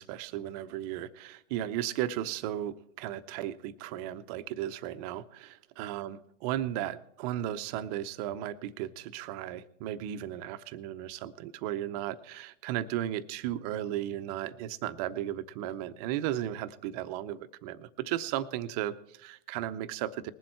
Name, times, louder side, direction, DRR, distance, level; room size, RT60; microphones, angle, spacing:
voice 1, 0.0-20.3, right 12 dB, 30° right, 13 dB, 0.6 m, -35 dB
20.0 x 7.6 x 4.3 m, 0.75 s
hypercardioid pair, 125°, 38 cm